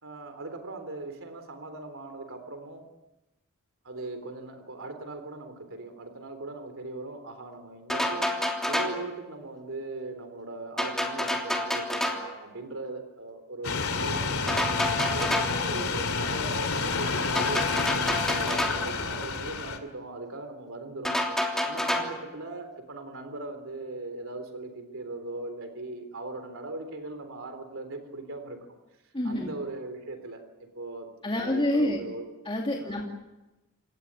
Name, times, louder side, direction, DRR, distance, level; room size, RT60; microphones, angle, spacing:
voice 1, 0.0-2.8 3.8-8.3 8.7-14.6 15.1-21.2 21.6-28.6 29.2-32.3 32.8-33.0, right 2 dB, 65° right, 7 dB, 3.7 m, -39 dB
sound 1, 7.9-9.1 10.8-12.3 14.5-15.6 17.3-18.9 21.0-22.2, left 1 dB, ahead, 3.2 m, -29 dB
sound 2, 13.6-19.8, left 4 dB, 75° left, 2.7 m, -29 dB
voice 2, 29.1-29.5 31.2-32.0 32.4-33.0, left 1 dB, 25° left, -1 dB, 2.7 m, -27 dB
28.5 x 17.0 x 9.0 m, 1.0 s
head